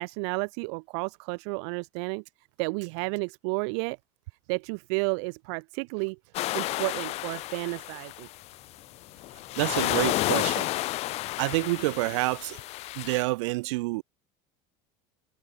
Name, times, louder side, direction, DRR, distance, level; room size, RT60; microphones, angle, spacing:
voice 1, 0.0-2.2 2.6-4.0 4.5-6.2 6.5-8.3, right 35 dB, 70° right, 1.1 m, -32 dB
sound 1, 6.3-8.5 9.1-13.2, left 18 dB, 45° left, 2.3 m, -31 dB
voice 2, 9.6-10.7 11.4-12.6 12.9-14.0, right 24 dB, 85° right, 1.6 m, -28 dB
cardioid pair, 165°, 15 cm